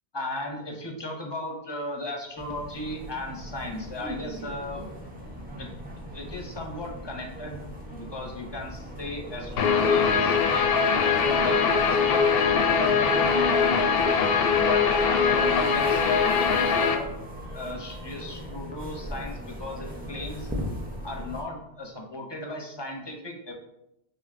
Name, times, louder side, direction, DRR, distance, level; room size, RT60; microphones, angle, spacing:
voice 1, 0.1-4.9 5.6-5.7 6.1-7.6 7.9-12.3 13.3-13.9 14.7-17.1 17.5-20.5 21.0-23.5, left 2 dB, 30° left, 1 dB, 0.7 m, -36 dB
sound 1, 2.4-21.4, equal, 10° right, 0.5 m, -39 dB
Guitar, 9.6-16.9, left 5 dB, 70° left, 0.7 m, -22 dB
6.2 x 2.9 x 2.5 m, 0.83 s
omnidirectional pair, 1.1 m